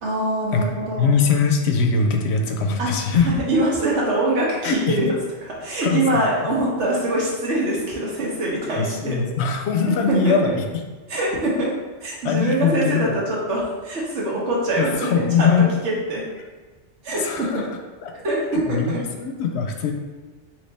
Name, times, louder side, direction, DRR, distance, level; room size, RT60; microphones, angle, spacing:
voice 1, 0.0-1.1 2.8-5.1 5.6-9.2 10.1-10.5 11.1-11.7 12.0-15.5 15.8-16.2 17.0-17.6 18.2-19.0, right 1 dB, 80° right, -4 dB, 1.3 m, -23 dB
voice 2, 1.0-3.3 4.6-5.1 5.8-6.0 8.8-10.6 12.2-13.2 14.8-15.7 17.2-18.1 18.5-19.9, left 5 dB, 70° left, 3 dB, 0.8 m, -21 dB
4.0 x 3.0 x 3.3 m, 1.3 s
omnidirectional pair, 1.2 m